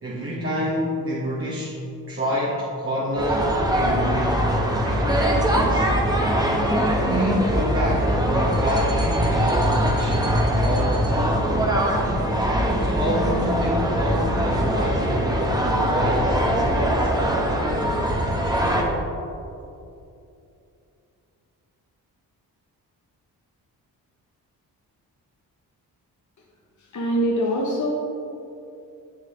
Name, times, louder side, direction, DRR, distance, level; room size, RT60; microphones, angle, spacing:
voice 1, 0.0-4.6 4.8-5.9 7.0-11.8 12.7-17.1, equal, 30° right, -6 dB, 1.8 m, -28 dB
sound 1, 3.2-18.8, equal, 10° right, 1.4 m, -22 dB
voice 2, 26.9-27.9, equal, 45° left, -3 dB, 1.4 m, -23 dB
7.3 x 7.1 x 3.9 m, 2.7 s
supercardioid pair, 40°, 42 cm